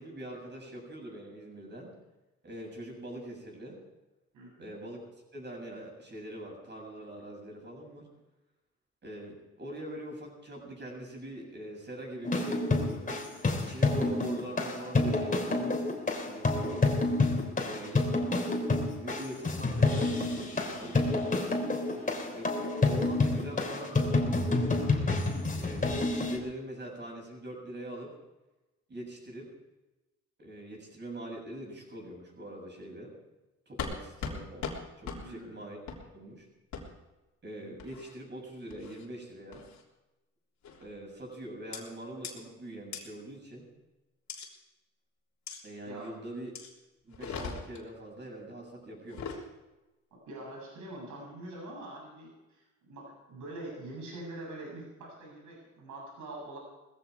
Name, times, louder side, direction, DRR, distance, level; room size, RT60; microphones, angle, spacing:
voice 1, 0.0-2.0 2.4-3.8 4.6-5.0 5.3-8.1 9.0-13.1 13.6-15.8 16.2-16.9 17.6-18.1 18.7-21.0 22.3-24.5 24.8-25.2 25.6-28.1 28.9-29.5 30.4-33.1 33.7-34.6 35.0-36.5 37.4-39.7 40.8-43.7 45.6-46.6 47.0-49.4, right 1 dB, 35° right, 0 dB, 7.7 m, -43 dB
voice 2, 4.3-4.7 21.9-22.1 35.1-35.6 45.9-46.1 50.1-56.6, right 1 dB, 80° right, -2 dB, 7.8 m, -44 dB
sound 1, 12.2-26.4, left 2 dB, 25° left, 3.4 m, -28 dB
sound 2, 33.8-33.9 34.2-34.4 34.6-34.8 35.0-35.2 35.9-36.0 36.7-36.8 37.8-38.1 38.7-39.0 39.5-39.8 40.6-40.9 41.7-41.8 42.2-42.3 42.9-43.0 44.3-44.5 45.5-45.6 46.5-46.7 47.1-47.8 49.0-49.4, left 5 dB, 65° left, 3.5 m, -38 dB
19.5 x 15.0 x 4.8 m, 1.0 s
cardioid pair, 90°, 30 cm